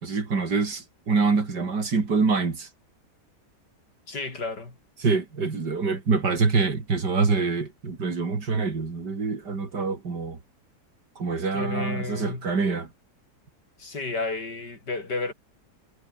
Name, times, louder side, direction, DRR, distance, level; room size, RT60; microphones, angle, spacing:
voice 1, 0.0-2.7 5.0-10.4 11.2-12.9, right 4 dB, 80° right, 3.7 m, -25 dB
voice 2, 4.1-4.7 11.5-12.5 13.8-15.3, left 3 dB, 85° left, 5.1 m, -32 dB
omnidirectional pair, 1.8 m